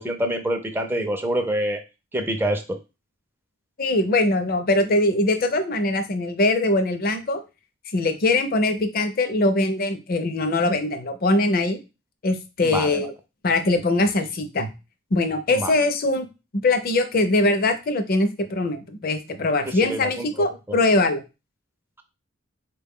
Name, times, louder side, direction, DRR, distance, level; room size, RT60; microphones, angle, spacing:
voice 1, 0.0-1.8 2.1-2.8 12.6-13.1 15.5-15.7 19.7-20.3, right 1 dB, 10° right, 5 dB, 0.4 m, -26 dB
voice 2, 3.8-7.4 7.9-11.8 12.2-13.1 13.4-14.7 15.1-21.2, left 2 dB, 45° left, 8 dB, 0.5 m, -22 dB
4.2 x 2.2 x 3.5 m, 0.28 s
head